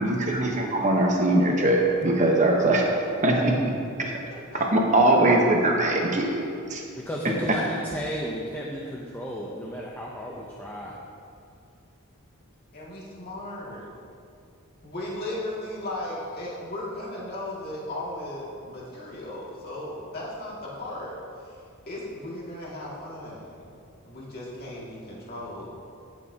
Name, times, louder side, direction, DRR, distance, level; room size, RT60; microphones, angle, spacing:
voice 1, 0.0-3.6 4.0-4.1 4.7-6.8, right 1 dB, 35° right, 0 dB, 1.0 m, -21 dB
voice 2, 7.0-11.0, equal, 10° left, -3 dB, 0.6 m, -33 dB
voice 3, 12.7-13.9 14.8-21.2 21.4-21.6 21.9-23.7 24.1-25.7, left 1 dB, 45° left, -6 dB, 2.2 m, -36 dB
16.0 x 6.4 x 2.8 m, 2.4 s
head